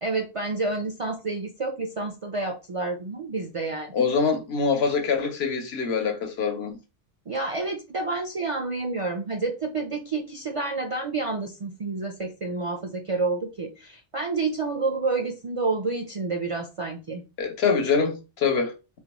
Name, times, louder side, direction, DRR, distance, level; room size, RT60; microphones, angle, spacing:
voice 1, 0.0-4.0 7.3-17.2, right 3 dB, 50° right, 0.4 m, -29 dB
voice 2, 3.9-6.8 17.4-18.7, left 5 dB, 75° left, 1.0 m, -24 dB
3.8 x 2.2 x 2.9 m
omnidirectional pair, 1.1 m